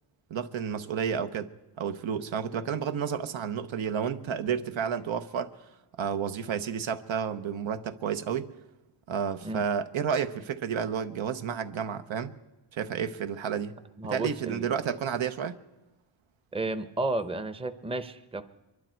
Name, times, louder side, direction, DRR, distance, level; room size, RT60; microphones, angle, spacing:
voice 1, 0.3-1.5 1.8-5.5 6.0-8.5 9.1-12.3 12.7-13.8 14.0-15.6, right 7 dB, 85° right, 0.9 m, -31 dB
voice 2, 14.0-14.6 16.5-18.4, right 2 dB, 15° right, 0.6 m, -32 dB
24.0 x 12.0 x 4.5 m
wide cardioid pair, 130°, 46 cm